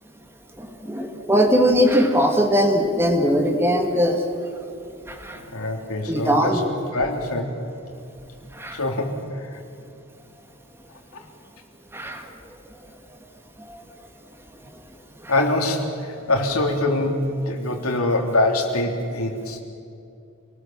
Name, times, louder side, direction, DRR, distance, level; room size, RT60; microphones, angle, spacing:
voice 1, 0.6-4.2 5.1-5.4 6.1-6.6 8.6-8.8 11.9-12.2, equal, 10° right, 4 dB, 2.0 m, -20 dB
voice 2, 5.4-6.6 6.9-7.5 8.8-9.5 11.1-11.2 15.3-19.6, left 2 dB, 85° left, 2 dB, 3.6 m, -24 dB
27.5 x 19.5 x 7.5 m, 2.6 s
head